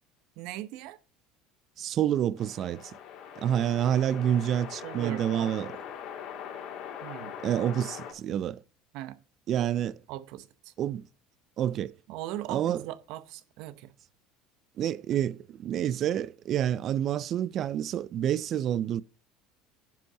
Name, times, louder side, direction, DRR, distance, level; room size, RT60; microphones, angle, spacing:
voice 1, 0.4-1.0 4.8-5.5 7.0-7.4 8.9-9.2 10.1-10.7 12.1-13.9, right 14 dB, 70° right, 0.8 m, -39 dB
voice 2, 1.8-2.9 3.4-5.7 7.4-8.6 9.5-10.0 10.8-11.1 11.6-11.9 12.5-12.9 14.8-19.0, right 10 dB, 45° right, 0.4 m, -28 dB
sound 1, 2.4-8.1, left 8 dB, 60° left, 2.6 m, -42 dB
10.5 x 5.4 x 5.5 m
supercardioid pair, 115°, 0 cm